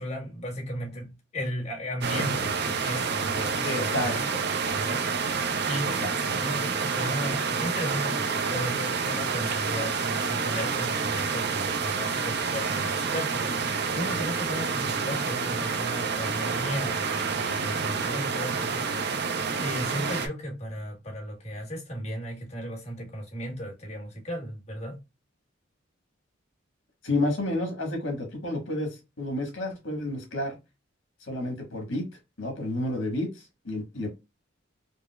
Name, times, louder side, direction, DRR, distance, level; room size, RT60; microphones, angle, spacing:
voice 1, 0.0-4.3 4.6-6.0 6.3-19.3 19.6-25.0, equal, 35° left, 1.3 m, -35 dB
sound 1, 2.0-20.3, right 5 dB, 55° right, 0.5 m, -28 dB
voice 2, 3.6-4.1 6.0-6.1 27.0-28.9 29.2-30.5 31.2-32.0 32.4-33.3 33.6-34.1, left 1 dB, 80° left, 1.5 m, -30 dB
4.9 x 2.1 x 2.2 m
head